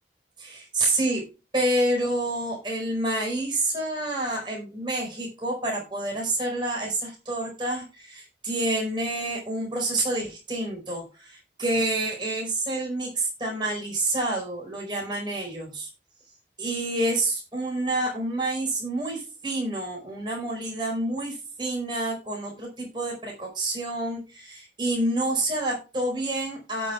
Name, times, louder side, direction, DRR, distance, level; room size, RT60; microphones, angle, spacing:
voice 1, 0.4-1.2 1.5-15.9 16.6-26.9, right 1 dB, 25° right, -1 dB, 4.6 m, -28 dB
17.5 x 6.4 x 2.4 m, 0.31 s
head